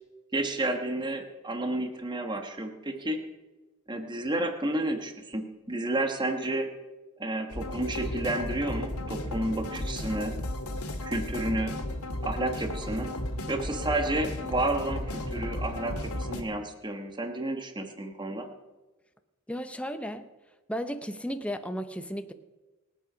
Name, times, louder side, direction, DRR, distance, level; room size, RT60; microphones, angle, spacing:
voice 1, 0.3-3.2 3.9-6.7 7.2-10.3 11.0-11.7 12.2-13.1 13.5-18.5, right 1 dB, 20° right, 5 dB, 1.3 m, -31 dB
sound 1, 7.5-16.4, left 1 dB, 90° left, 2.0 m, -34 dB
voice 2, 19.5-20.3 20.7-22.3, equal, 5° left, 8 dB, 0.7 m, -34 dB
25.0 x 8.5 x 5.1 m, 1.2 s
head